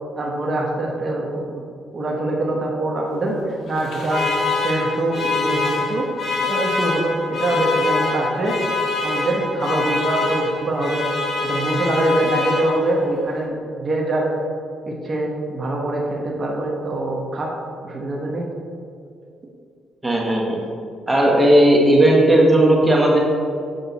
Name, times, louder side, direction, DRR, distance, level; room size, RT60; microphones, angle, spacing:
voice 1, 0.2-1.6 1.9-4.3 4.6-6.1 6.4-8.6 9.0-11.1 11.4-14.3 14.8-17.5 17.8-18.5, right 1 dB, 35° right, -2 dB, 1.1 m, -23 dB
Alarm, 3.7-13.1, left 3 dB, 50° left, 1.7 m, -25 dB
voice 2, 20.0-20.6 21.1-23.2, right 1 dB, 15° right, -2 dB, 1.3 m, -15 dB
7.9 x 5.3 x 4.1 m, 2.4 s
cardioid pair, 90°, 0 cm